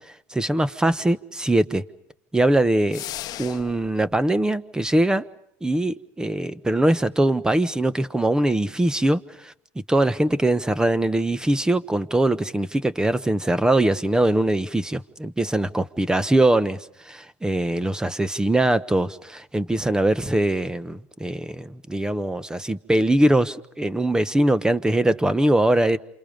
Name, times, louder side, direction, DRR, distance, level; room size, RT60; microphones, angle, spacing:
voice 1, 0.3-1.8 2.3-3.0 3.4-5.2 5.6-9.5 9.9-16.8 17.1-26.0, right 1 dB, 10° right, 1.2 m, -22 dB
sound 1, 2.9-3.9, left 13 dB, 50° left, 1.0 m, -35 dB
28.5 x 28.0 x 5.3 m
supercardioid pair, 100°, 8 cm